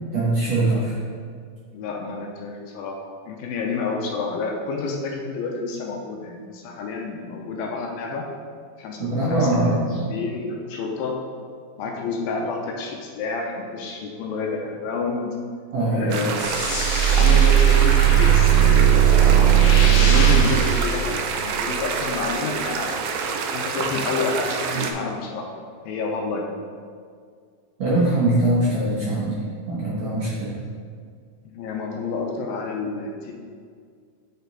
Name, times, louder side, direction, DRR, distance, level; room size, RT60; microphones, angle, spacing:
voice 1, 0.1-1.0 9.0-10.1 15.7-16.2 27.8-29.4 29.7-30.6, right 1 dB, 60° right, -8 dB, 1.8 m, -22 dB
voice 2, 1.7-3.0 3.3-8.3 8.8-11.2 11.8-15.4 15.9-16.6 17.1-25.5 25.9-26.5 31.5-33.3, left 4 dB, 85° left, 1 dB, 2.4 m, -29 dB
sound 1, 16.1-24.9, right 5 dB, 80° right, 2.3 m, -28 dB
sound 2, 16.4-21.7, right 9 dB, 60° left, 1.9 m, -17 dB
7.9 x 4.3 x 3.9 m, 2.1 s
omnidirectional pair, 4.3 m